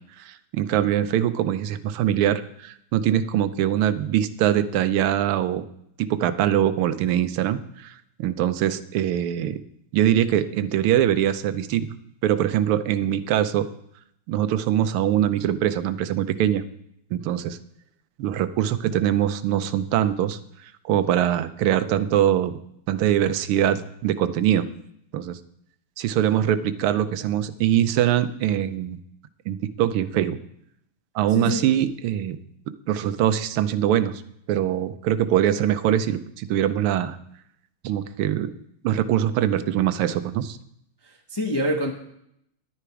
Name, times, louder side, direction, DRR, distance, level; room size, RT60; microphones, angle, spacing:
voice 1, 0.2-5.6 6.0-9.6 9.9-11.9 12.2-13.7 14.3-16.6 17.1-17.6 18.2-22.6 22.9-24.7 25.1-25.4 26.0-29.0 29.5-30.4 31.1-32.4 32.7-34.2 34.5-37.2 37.8-38.5 38.8-40.6, right 11 dB, 90° right, 12 dB, 1.6 m, -23 dB
voice 2, 31.3-31.7 41.0-41.9, equal, 20° left, 1 dB, 0.6 m, -26 dB
11.5 x 10.0 x 4.7 m, 0.74 s
omnidirectional pair, 2.3 m